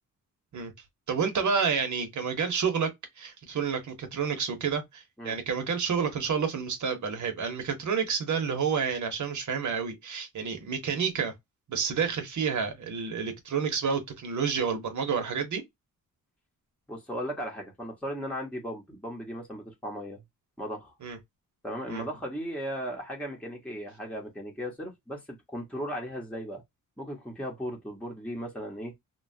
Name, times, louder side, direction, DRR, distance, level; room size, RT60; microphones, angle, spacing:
voice 1, 1.1-2.9 3.2-11.3 11.7-15.6 21.0-21.2 21.9-22.0, right 6 dB, 60° right, 1.0 m, -29 dB
voice 2, 16.9-20.2 20.6-20.9 21.6-25.2 25.5-26.6 27.0-29.0, equal, 5° left, 1.0 m, -36 dB
2.8 x 2.3 x 2.7 m
wide cardioid pair, 110°, 33 cm